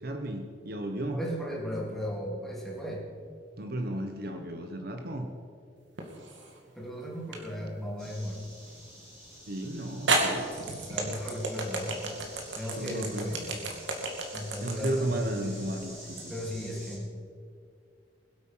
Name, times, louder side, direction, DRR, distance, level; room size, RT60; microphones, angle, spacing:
voice 1, 0.0-1.2 3.6-5.3 9.5-10.5 12.6-13.3 14.6-16.3, right 1 dB, 55° right, 5 dB, 1.1 m, -34 dB
voice 2, 1.1-3.1 6.7-8.4 10.8-13.8 14.3-15.7 16.3-17.1, equal, ahead, -4 dB, 3.3 m, -36 dB
flat tire, 6.0-6.6 7.3-7.4 9.3-9.4 10.1-16.3, right 3 dB, 85° right, 2.3 m, -31 dB
sound 1, 8.0-17.0, equal, 15° right, 4.5 m, -48 dB
22.0 x 8.5 x 5.8 m, 2.3 s
head